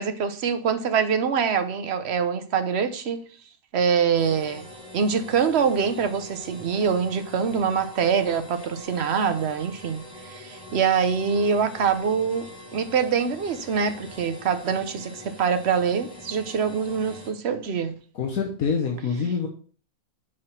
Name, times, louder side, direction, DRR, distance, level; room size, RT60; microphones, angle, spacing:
voice 1, 0.0-3.2 3.7-4.7 4.9-17.9, right 6 dB, 55° right, 1.0 m, -24 dB
sound 1, 4.1-17.3, left 1 dB, 25° left, 4.2 m, -44 dB
voice 2, 18.1-19.5, left 5 dB, 90° left, 1.5 m, -26 dB
6.2 x 4.8 x 5.8 m
omnidirectional pair, 1.5 m